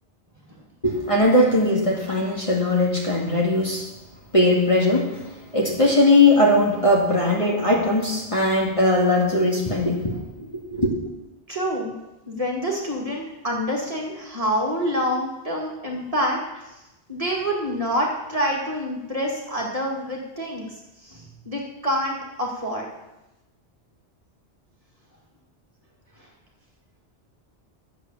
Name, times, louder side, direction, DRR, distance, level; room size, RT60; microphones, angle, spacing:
voice 1, 0.8-3.9 4.3-10.9, left 1 dB, 30° left, -3 dB, 2.2 m, -20 dB
voice 2, 11.5-12.0 12.3-16.8 17.1-22.9 26.2-26.3, equal, 30° right, -2 dB, 2.3 m, -27 dB
11.5 x 7.8 x 7.2 m, 0.98 s
omnidirectional pair, 1.2 m